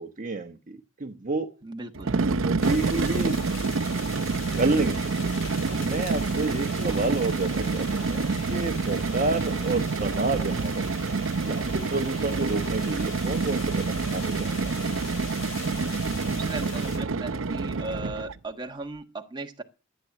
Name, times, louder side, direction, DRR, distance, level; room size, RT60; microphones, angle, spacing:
voice 1, 0.0-1.5 2.4-3.6 4.1-5.3 5.7-8.2 8.5-10.9 11.4-14.7, right 3 dB, 40° right, 5 dB, 1.2 m, -30 dB
voice 2, 1.6-2.2 6.7-7.2 7.9-8.1 9.6-9.9 16.4-19.6, right 2 dB, 25° right, 3 dB, 1.5 m, -37 dB
sound 1, 2.0-18.4, right 4 dB, 70° right, 0.7 m, -28 dB
sound 2, 2.6-17.0, left 4 dB, 90° left, 4.2 m, -41 dB
14.0 x 9.0 x 7.2 m, 0.33 s
head